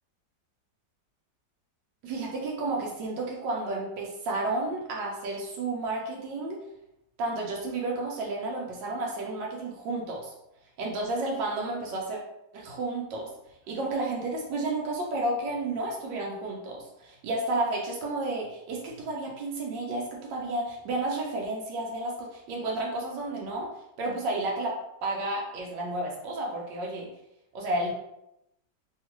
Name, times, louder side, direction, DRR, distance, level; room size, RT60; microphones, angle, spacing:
voice 1, 2.0-6.6 7.2-10.3 10.8-12.2 12.5-13.3 13.7-23.7 24.0-27.1 27.5-27.9, right 2 dB, 80° right, -3 dB, 1.3 m, -31 dB
3.4 x 2.4 x 2.9 m, 0.84 s
omnidirectional pair, 1.9 m